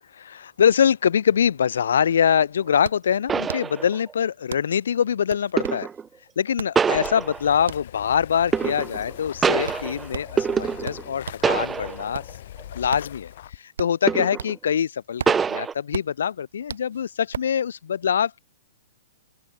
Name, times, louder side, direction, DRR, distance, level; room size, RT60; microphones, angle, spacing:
voice 1, 0.1-5.9 6.4-12.4 12.7-18.4, left 8 dB, 70° left, 1.5 m, -24 dB
sound 1, 2.4-11.5 11.9-14.8 15.0-17.6, right 7 dB, 80° right, 4.2 m, -37 dB
sound 2, 2.7-2.8 3.3-4.2 5.6-6.1 6.8-7.7 8.5-9.1 9.4-11.2 11.4-12.2 12.6-12.7 14.1-14.6 15.3-15.7, right 6 dB, 10° right, 3.1 m, -25 dB
sound 3, 6.9-13.6, left 12 dB, 45° left, 4.6 m, -41 dB
open air
hypercardioid pair, 175°, 0 cm